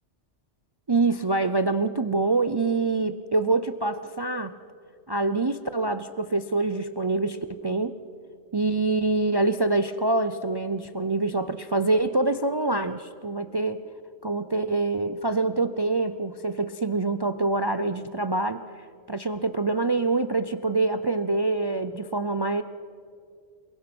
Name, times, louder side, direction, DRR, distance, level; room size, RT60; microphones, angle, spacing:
voice 1, 0.9-4.6 5.1-8.0 8.5-13.8 14.2-18.6 19.1-22.6, right 3 dB, 40° right, 12 dB, 0.3 m, -25 dB
28.0 x 22.0 x 6.1 m, 2.4 s
omnidirectional pair, 1.2 m